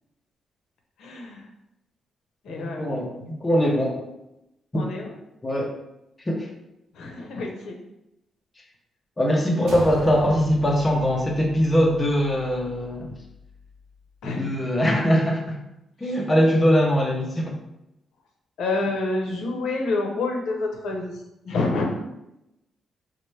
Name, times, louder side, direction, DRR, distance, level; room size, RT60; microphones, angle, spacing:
voice 1, 1.0-1.4 2.4-2.9 4.8-5.1 6.9-7.8 14.2-14.6 18.6-21.2 21.5-22.0, left 2 dB, 85° left, 1 dB, 0.7 m, -28 dB
voice 2, 2.5-4.0 4.7-4.8 5.4-5.7 6.3-6.5 9.2-13.2 14.2-15.6 16.0-17.6, equal, 15° left, -1 dB, 0.5 m, -22 dB
sound 1, 9.7-14.2, equal, 85° right, 0.5 m, -41 dB
4.1 x 2.1 x 3.2 m, 0.87 s
wide cardioid pair, 170°, 0 cm